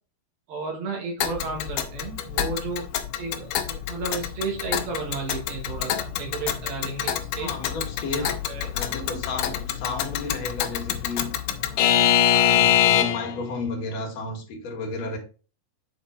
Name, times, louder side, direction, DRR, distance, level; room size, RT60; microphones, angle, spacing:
voice 1, 0.5-2.8 3.2-7.6 8.0-8.7, right 4 dB, 80° right, 3.5 m, -33 dB
Alarm / Clock, 1.2-13.4, left 10 dB, 75° left, 2.2 m, -25 dB
voice 2, 7.4-8.4 8.7-11.3 11.7-15.2, left 3 dB, 55° left, 2.5 m, -33 dB
7.8 x 4.3 x 3.9 m
omnidirectional pair, 4.2 m